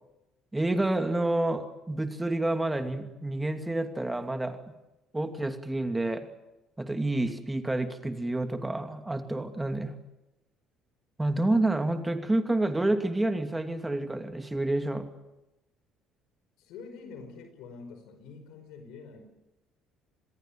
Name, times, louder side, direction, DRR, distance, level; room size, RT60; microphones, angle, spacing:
voice 1, 0.5-4.6 5.1-6.3 6.8-9.9 11.2-15.1, right 2 dB, 15° right, 6 dB, 2.7 m, -29 dB
voice 2, 16.6-19.3, left 4 dB, 70° left, 8 dB, 5.2 m, -46 dB
26.5 x 21.5 x 7.7 m, 0.99 s
hypercardioid pair, 55°, 0 cm